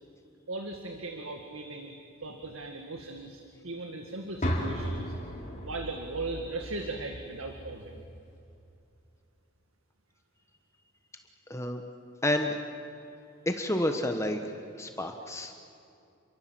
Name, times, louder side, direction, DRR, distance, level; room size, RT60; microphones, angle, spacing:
voice 1, 0.5-1.9 2.2-5.1 5.6-8.0, right 2 dB, 90° right, 4 dB, 2.0 m, -38 dB
sound 1, 4.4-8.4, equal, 35° left, 3.0 m, -36 dB
voice 2, 11.5-11.8 12.2-12.6 13.5-14.5 14.8-15.5, left 1 dB, 15° left, 5 dB, 1.2 m, -29 dB
29.0 x 23.5 x 7.7 m, 2.6 s
head